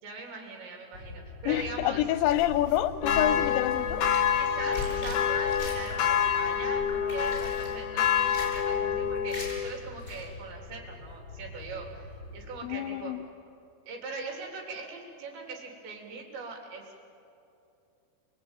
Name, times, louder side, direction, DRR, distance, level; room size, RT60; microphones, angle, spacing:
voice 1, 0.0-2.0 4.4-13.2 13.8-17.0, right 4 dB, 75° right, 0 dB, 5.5 m, -41 dB
sound 1, 0.9-12.5, left 2 dB, 35° left, 5.3 m, -45 dB
voice 2, 1.5-4.0 12.6-13.2, left 13 dB, 85° left, 12 dB, 3.2 m, -27 dB
sound 2, 2.0-6.2 6.5-7.7 8.1-8.7 9.3-9.6 10.0-10.2, left 3 dB, 20° left, 7.3 m, -41 dB
sound 3, 3.0-9.7, left 8 dB, 70° left, 2.1 m, -27 dB
29.5 x 22.0 x 9.0 m, 2.7 s
omnidirectional pair, 5.1 m